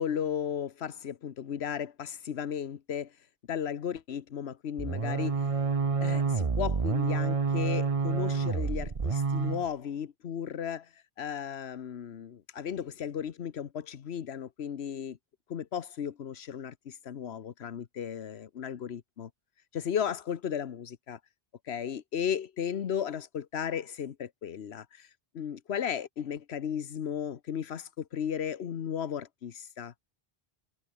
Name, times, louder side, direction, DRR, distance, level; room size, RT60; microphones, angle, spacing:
voice 1, 0.0-3.1 3.5-5.5 6.0-15.2 15.5-19.3 19.7-21.2 21.6-25.1 25.3-29.9, left 8 dB, 90° left, 1.2 m, -35 dB
sound 1, 4.8-9.7, right 5 dB, 35° right, 1.0 m, -28 dB
omnidirectional pair, 1.0 m